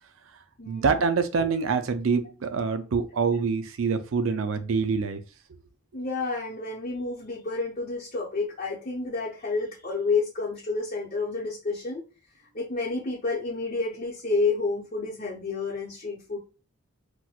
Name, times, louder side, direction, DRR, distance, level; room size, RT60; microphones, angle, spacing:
voice 1, 0.7-5.2, right 5 dB, 75° right, 9 dB, 0.4 m, -25 dB
voice 2, 5.9-12.0 12.5-16.4, left 3 dB, 40° left, -5 dB, 0.8 m, -29 dB
4.3 x 2.1 x 2.3 m, 0.34 s
head